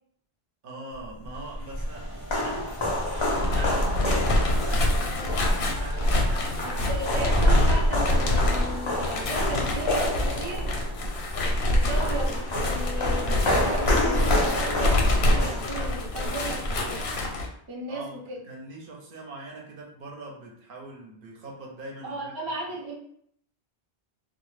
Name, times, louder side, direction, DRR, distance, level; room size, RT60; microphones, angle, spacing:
voice 1, 0.6-6.9 17.9-22.3, right 2 dB, 65° right, 0 dB, 0.7 m, -42 dB
sound 1, 1.3-16.3, left 1 dB, 45° left, 0.4 m, -28 dB
Train, 1.8-15.2, right 1 dB, 10° right, 0.6 m, -44 dB
sound 2, 3.3-17.5, left 1 dB, 80° left, 0.8 m, -26 dB
voice 2, 6.6-10.7 11.7-17.0 17.7-18.4 22.0-23.0, right 1 dB, 40° right, -2 dB, 0.3 m, -36 dB
2.0 x 2.0 x 3.0 m, 0.66 s
omnidirectional pair, 1.1 m